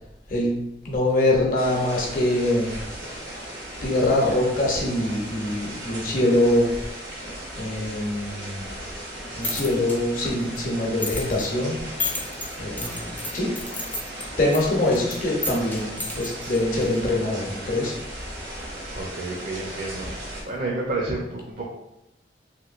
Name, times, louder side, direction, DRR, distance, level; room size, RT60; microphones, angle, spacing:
voice 1, 0.3-2.8 3.1-3.3 3.8-6.8 7.1-8.6 9.4-13.6 14.4-18.0 20.3-20.4, left 1 dB, 50° left, -2 dB, 0.7 m, -24 dB
sound 1, 1.5-20.4, right 1 dB, 80° right, 1.0 m, -37 dB
sound 2, 9.1-17.2, left 2 dB, 10° left, 0.4 m, -35 dB
voice 2, 18.9-20.1 20.4-21.7, right 2 dB, 50° right, -2 dB, 0.5 m, -30 dB
2.9 x 2.9 x 2.4 m, 0.87 s
head